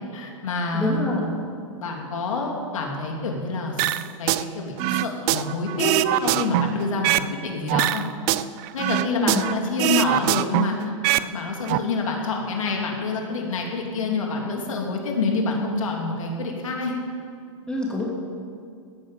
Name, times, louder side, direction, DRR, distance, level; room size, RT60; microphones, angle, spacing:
voice 1, 0.1-1.1 1.8-5.9 6.2-8.0 8.7-10.8 11.2-16.9, left 3 dB, 80° left, 0 dB, 3.1 m, -27 dB
voice 2, 0.7-1.2 9.1-9.4 17.7-18.1, left 1 dB, 5° left, -4 dB, 2.7 m, -25 dB
sound 1, 3.8-4.4 4.8-7.3 7.7-9.5 9.8-11.3 11.5-11.8, right 16 dB, 30° right, 0.4 m, -23 dB
16.5 x 9.0 x 7.5 m, 2.3 s
hypercardioid pair, 145°, 17 cm